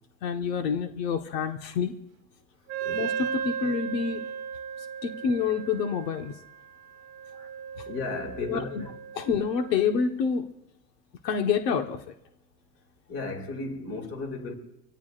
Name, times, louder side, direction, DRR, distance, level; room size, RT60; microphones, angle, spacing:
voice 1, 0.2-1.9 2.9-4.3 5.0-6.3 8.5-8.8 9.1-10.4 11.2-12.0, left 6 dB, 75° left, 1.5 m, -27 dB
Wind instrument woodwind instrument, 2.7-10.0, right 7 dB, 30° right, 1.3 m, -36 dB
voice 2, 7.9-8.9 13.1-14.5, left 3 dB, 30° left, 2.8 m, -35 dB
25.5 x 17.5 x 2.5 m
supercardioid pair, 155°, 49 cm